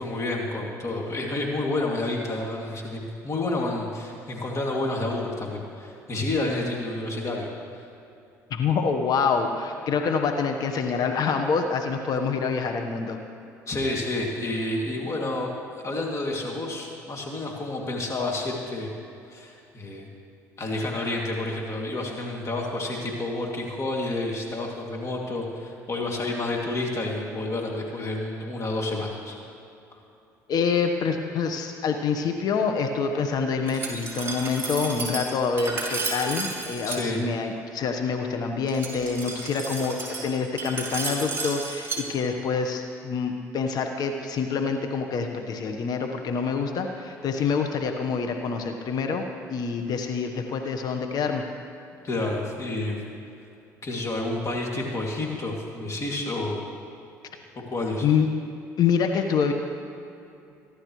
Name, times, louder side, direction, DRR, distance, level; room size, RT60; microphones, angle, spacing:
voice 1, 0.0-7.5 13.7-15.5 15.8-18.9 19.3-20.1 20.6-29.4 29.9-30.0 36.9-37.2 52.0-53.0 53.8-56.6 57.7-58.1, left 2 dB, 40° left, -1 dB, 2.6 m, -29 dB
voice 2, 8.5-13.2 30.5-51.4 58.0-58.3 58.8-59.5, left 5 dB, 55° left, 4 dB, 1.2 m, -26 dB
Glass, 33.7-37.0 38.7-42.0, right 3 dB, 30° right, 4.1 m, -32 dB
23.5 x 11.5 x 3.2 m, 2.7 s
hypercardioid pair, 65°, 8 cm